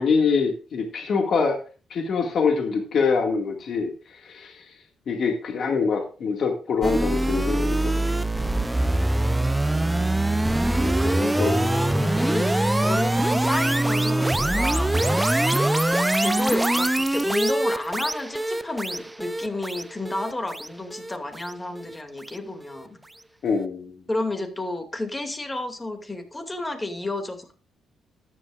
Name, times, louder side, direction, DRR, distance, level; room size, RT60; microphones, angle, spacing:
voice 1, 0.0-1.6 1.9-4.8 5.1-8.2 11.4-11.6 23.4-23.9, left 5 dB, 55° left, 3 dB, 2.0 m, -24 dB
sound 1, 6.8-22.0, right 1 dB, 10° right, 0.6 m, -23 dB
voice 2, 10.7-15.2 15.5-23.0 24.1-27.5, left 2 dB, 20° left, 5 dB, 2.4 m, -31 dB
13.5 x 11.0 x 2.5 m, 0.36 s
cardioid pair, 90°, 0 cm